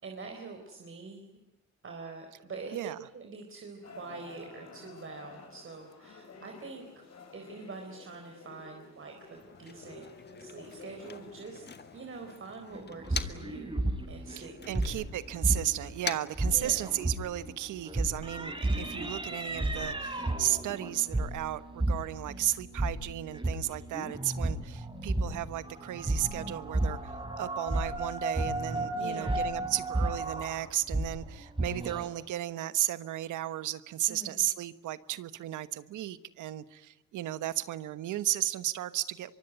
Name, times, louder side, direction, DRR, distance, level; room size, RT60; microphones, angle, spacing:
voice 1, 0.0-1.3 1.8-2.8 3.1-7.0 7.3-10.1 10.4-11.7 11.9-13.8 14.1-14.9 16.5-16.8 22.3-22.5 28.9-29.5 34.1-34.4, right 4 dB, 45° right, 3 dB, 4.3 m, -45 dB
sound 1, 3.8-12.3, left 4 dB, 60° left, 7.5 m, -51 dB
Motor vehicle (road), 9.2-13.6 13.9-17.2, left 5 dB, 35° left, 1.8 m, -44 dB
sound 2, 12.7-15.9 16.2-32.1, right 1 dB, 15° right, 5.5 m, -33 dB
voice 2, 14.3-39.3, right 13 dB, 80° right, 14 dB, 1.3 m, -34 dB
24.5 x 24.0 x 9.2 m, 0.85 s
cardioid pair, 90°, 30 cm